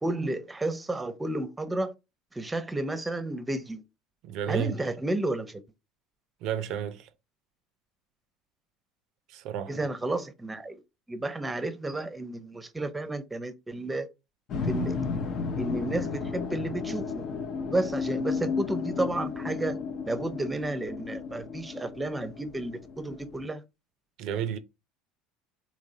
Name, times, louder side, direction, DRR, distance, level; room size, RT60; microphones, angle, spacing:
voice 1, 0.0-1.9 2.3-3.8 4.5-5.6 9.7-10.8 11.1-14.1 14.6-15.0 15.6-17.2 17.7-19.8 20.0-23.6, right 2 dB, 15° right, 0.7 m, -32 dB
voice 2, 4.2-4.7 6.4-7.1 9.3-9.7 24.2-24.6, right 9 dB, 60° right, 0.4 m, -31 dB
sound 1, 14.5-23.4, left 5 dB, 50° left, 0.6 m, -33 dB
3.8 x 3.0 x 2.7 m
hypercardioid pair, 80°, 0 cm